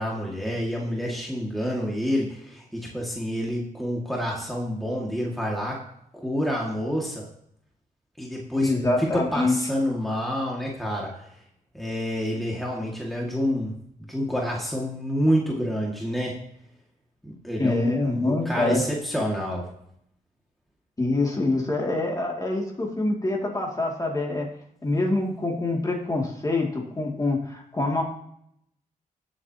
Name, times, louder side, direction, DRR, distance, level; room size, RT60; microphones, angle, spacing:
voice 1, 0.0-5.8 6.1-7.2 8.2-8.7 9.0-11.3 11.7-13.7 14.1-16.4 17.2-19.7, equal, ahead, -2 dB, 2.0 m, -28 dB
voice 2, 8.5-9.5 17.6-18.8 21.0-24.5 24.8-28.0, left 2 dB, 25° left, -1 dB, 2.4 m, -25 dB
19.5 x 7.6 x 2.9 m, 0.73 s
wide cardioid pair, 115°, 14 cm